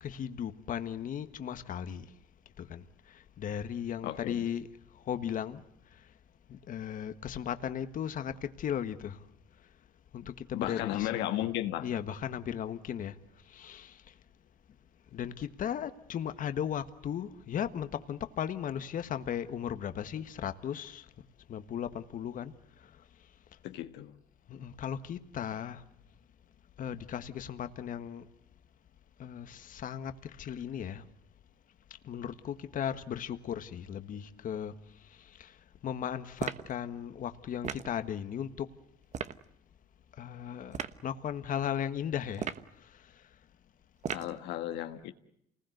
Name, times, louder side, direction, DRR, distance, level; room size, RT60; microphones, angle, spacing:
voice 1, 0.0-2.1 2.6-5.6 5.9-6.1 6.5-9.2 10.1-11.5 11.8-13.2 13.4-14.1 15.1-21.1 21.5-23.0 24.5-25.8 26.8-28.3 29.2-31.0 32.0-35.6 35.8-38.7 40.2-42.5 42.8-43.2, left 9 dB, 55° left, 1.5 m, -37 dB
voice 2, 4.0-4.4 10.5-11.9 23.6-24.1 44.1-45.1, left 13 dB, 90° left, 1.4 m, -34 dB
sound 1, 36.4-36.7 37.6-37.9 39.1-39.4 40.7-41.0 42.3-42.7 44.0-44.4, right 7 dB, 45° right, 1.2 m, -36 dB
28.5 x 20.0 x 8.0 m
cardioid pair, 110°, 17 cm